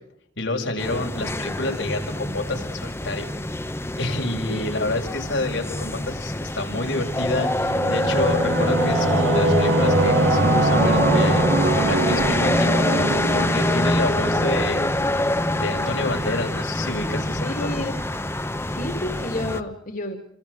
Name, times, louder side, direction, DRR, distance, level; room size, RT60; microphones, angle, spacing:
voice 1, 0.4-3.3 4.0-12.8 13.3-14.9 15.5-17.7, left 2 dB, 85° left, 2 dB, 6.4 m, -28 dB
Backyard mosque call to prayer street and seagull, 0.8-19.6, left 1 dB, 15° left, 1.2 m, -25 dB
Singing / Musical instrument, 7.0-16.2, right 2 dB, 90° right, 3.3 m, -24 dB
voice 2, 17.4-18.0 18.6-20.2, left 1 dB, 45° left, 5 dB, 2.8 m, -31 dB
29.0 x 27.5 x 4.9 m, 0.69 s
head